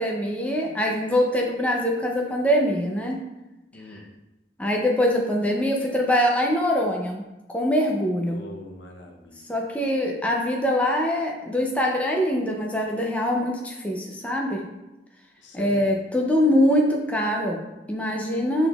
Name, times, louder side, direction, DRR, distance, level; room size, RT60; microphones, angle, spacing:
voice 1, 0.0-3.2 4.6-7.2 7.5-8.4 9.5-14.6 15.5-18.7, equal, 10° left, 0 dB, 0.5 m, -23 dB
voice 2, 3.7-4.1 8.3-9.5 15.4-16.0, left 1 dB, 90° left, 3 dB, 0.7 m, -42 dB
5.8 x 3.5 x 2.3 m, 0.98 s
head